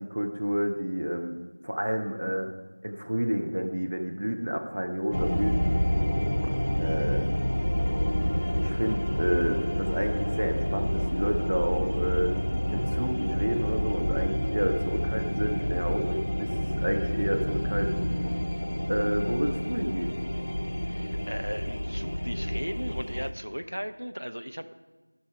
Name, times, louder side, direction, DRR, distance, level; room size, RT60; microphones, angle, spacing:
voice 1, 0.0-1.4 1.6-2.5 2.8-5.7 6.4-6.5 6.8-7.2 8.5-12.4 12.7-18.1 18.9-20.1, equal, 25° right, 3 dB, 0.5 m, -30 dB
sound 1, 5.1-23.3, equal, 55° left, 0.7 m, -28 dB
voice 2, 20.8-24.7, equal, 80° right, 10 dB, 0.8 m, -37 dB
14.0 x 5.7 x 5.0 m, 1.3 s
figure-of-eight pair, 180°, 0 cm